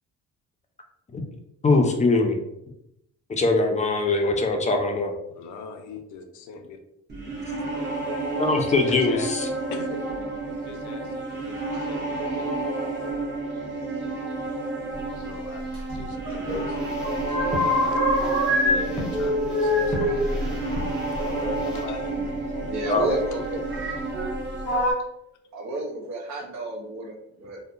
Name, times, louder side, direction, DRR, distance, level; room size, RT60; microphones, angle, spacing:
voice 1, 1.6-2.4 3.3-5.1 8.4-9.5 22.9-23.1, left 3 dB, 25° left, 3 dB, 0.4 m, -22 dB
voice 2, 5.3-6.8 8.8-9.3 9.7-10.0 10.6-12.5 15.3-15.6 15.9-18.3 18.6-20.5 21.2-22.2 22.5-23.2 23.6-23.7, left 5 dB, 75° left, 7 dB, 0.5 m, -40 dB
sound 1, 7.1-24.8, right 2 dB, 35° right, 1.0 m, -31 dB
sound 2, 15.7-16.7 16.9-18.8 19.1-21.6 22.6-22.7 23.7-24.3 24.6-24.9, left 1 dB, 85° right, 1.3 m, -25 dB
sound 3, 16.5-21.9, left 1 dB, 5° right, 0.8 m, -38 dB
voice 3, 22.6-23.6 25.5-27.6, right 1 dB, 65° right, 0 dB, 0.8 m, -31 dB
2.7 x 2.1 x 2.4 m, 0.80 s
cardioid pair, 90°, 30 cm